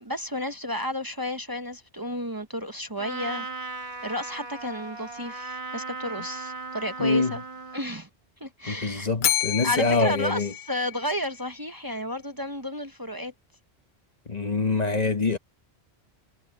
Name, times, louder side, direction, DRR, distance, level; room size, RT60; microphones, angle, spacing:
voice 1, 0.0-3.5 4.0-7.4 7.7-8.1 8.4-9.1 9.6-13.3, left 1 dB, 20° right, 1.0 m, -32 dB
Trumpet, 3.0-7.9, right 4 dB, 70° right, 1.8 m, -37 dB
voice 2, 7.0-7.4 8.7-10.5 14.3-15.4, left 3 dB, 40° left, 1.2 m, -25 dB
Bell, 9.2-11.4, left 12 dB, 55° left, 0.7 m, -29 dB
omnidirectional pair, 1.1 m